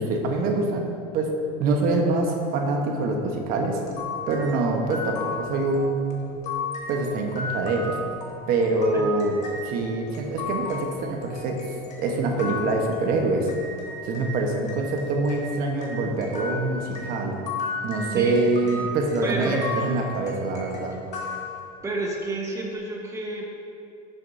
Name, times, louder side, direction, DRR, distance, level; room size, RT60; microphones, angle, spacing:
voice 1, 0.0-1.3 1.6-3.8 4.3-6.3 6.9-8.0 8.5-11.6 12.0-13.5 14.0-17.4 17.8-21.0, right 2 dB, 55° right, 2 dB, 1.1 m, -25 dB
sound 1, 3.9-14.4 14.7-22.1, left 4 dB, 45° left, 1.5 m, -35 dB
voice 2, 19.2-19.6 21.8-23.4, right 2 dB, 15° right, -1 dB, 1.3 m, -30 dB
11.5 x 6.5 x 2.7 m, 2.5 s
supercardioid pair, 125°, 18 cm